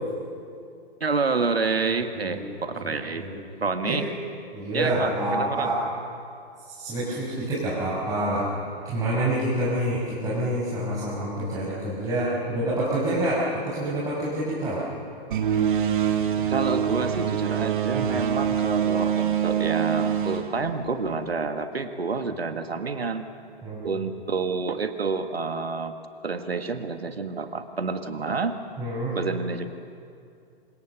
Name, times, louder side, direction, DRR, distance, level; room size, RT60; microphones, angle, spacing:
voice 1, 1.0-3.3 3.6-4.1 4.7-5.7 16.5-23.2 23.8-26.0 26.2-28.6 29.1-29.8, right 4 dB, 70° right, 7 dB, 1.9 m, -28 dB
voice 2, 4.5-5.8 6.7-8.5 8.8-14.8 17.9-18.2 23.6-23.9 28.8-29.1, right 1 dB, 10° right, -8 dB, 6.1 m, -27 dB
sound 1, 15.3-21.3, right 8 dB, 50° right, 2.3 m, -25 dB
27.5 x 26.0 x 6.8 m, 2.4 s
figure-of-eight pair, 120°, 31 cm